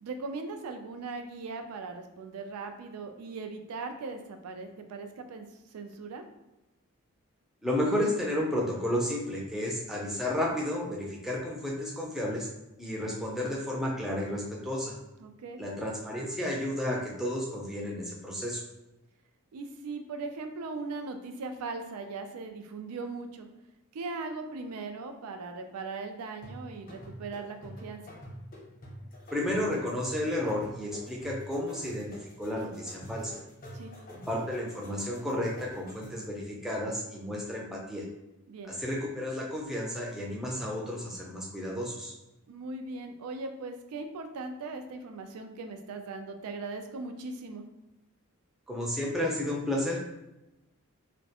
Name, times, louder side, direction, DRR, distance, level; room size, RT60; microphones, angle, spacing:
voice 1, 0.0-6.2 15.2-15.6 19.5-23.5 23.9-28.1 33.7-33.9 38.5-38.7 42.5-47.7, right 3 dB, 85° right, 6 dB, 0.4 m, -39 dB
voice 2, 7.6-12.5 12.8-14.9 15.6-18.6 29.3-33.4 34.1-38.0 38.7-42.1 48.7-50.1, left 1 dB, ahead, -4 dB, 0.4 m, -32 dB
sound 1, 26.4-36.3, equal, 40° left, 0.7 m, -46 dB
2.3 x 2.1 x 2.8 m, 0.95 s
head